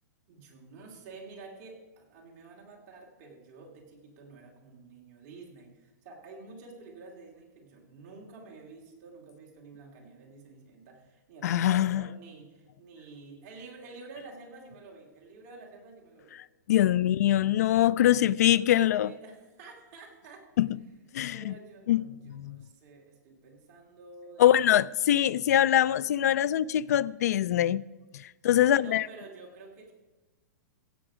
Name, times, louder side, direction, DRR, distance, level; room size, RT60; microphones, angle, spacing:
voice 1, 0.3-16.4 18.0-20.5 21.3-24.8 25.4-25.5 28.6-29.9, right 3 dB, 35° right, 2.6 m, -49 dB
voice 2, 11.4-12.1 16.7-19.1 20.6-20.7 21.1-21.6 21.9-22.6 24.4-27.8 28.1-29.1, left 12 dB, 60° left, 0.4 m, -23 dB
16.0 x 7.1 x 4.9 m
hypercardioid pair, 170°, 10 cm